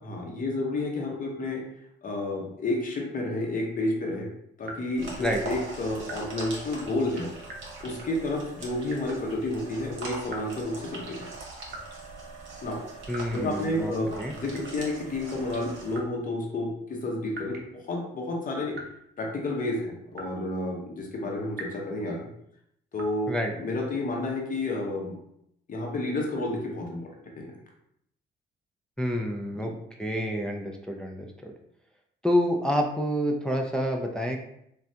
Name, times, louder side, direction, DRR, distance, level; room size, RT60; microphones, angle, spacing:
voice 1, 0.0-1.6 2.0-4.3 4.6-7.3 7.8-11.3 12.6-12.8 13.3-18.8 19.2-22.2 22.9-23.3 23.6-25.2 25.7-27.1 27.4-27.5, left 2 dB, 45° left, -1 dB, 0.8 m, -30 dB
sound 1, 4.6-5.0 6.0-6.3 7.4-7.8 8.9-9.3 10.3-10.7 11.7-12.0 13.1-13.5 14.5-14.9 15.9-16.2 17.3-17.8 18.7-19.0 20.1-20.5 21.5-21.9 22.9-23.2, right 2 dB, 55° right, 0.7 m, -43 dB
sound 2, 5.0-16.0, right 2 dB, 75° right, 1.1 m, -42 dB
voice 2, 13.1-13.9 14.2-14.3 23.3-23.5 29.0-29.7 30.0-31.5 32.2-34.4, equal, 5° left, 1 dB, 0.3 m, -28 dB
3.3 x 2.3 x 2.7 m, 0.75 s
cardioid pair, 90°, 20 cm